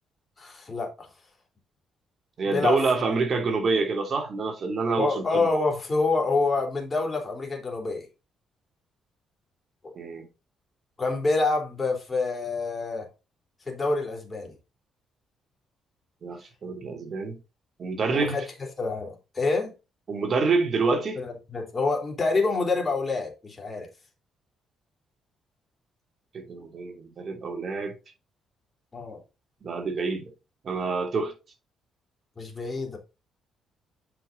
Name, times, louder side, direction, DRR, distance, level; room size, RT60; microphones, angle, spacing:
voice 1, 0.4-1.1 2.5-2.8 5.0-8.1 11.0-13.1 13.7-14.5 18.1-19.7 21.2-23.9 28.9-29.2 32.4-33.0, left 3 dB, 30° left, 3.5 m, -27 dB
voice 2, 2.4-5.5 10.0-10.2 16.2-17.4 17.8-18.4 20.1-21.2 26.3-27.9 29.6-30.2 30.6-31.3, right 4 dB, 50° right, 2.8 m, -27 dB
8.0 x 5.7 x 3.9 m
cardioid pair, 90°, 0 cm